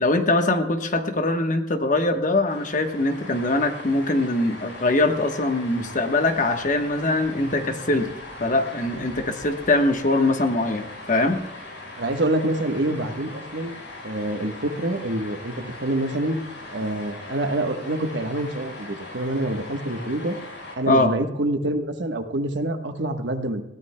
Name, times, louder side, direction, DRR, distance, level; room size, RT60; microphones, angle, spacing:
voice 1, 0.0-8.1 8.4-11.4 20.9-21.1, left 2 dB, 40° left, 6 dB, 1.1 m, -22 dB
sound 1, 2.5-20.8, left 2 dB, 70° left, 6.0 m, -40 dB
voice 2, 11.9-13.7 14.0-16.4 16.7-20.4 20.8-23.6, right 1 dB, 60° right, 6 dB, 1.2 m, -26 dB
21.0 x 16.0 x 2.2 m, 0.97 s
head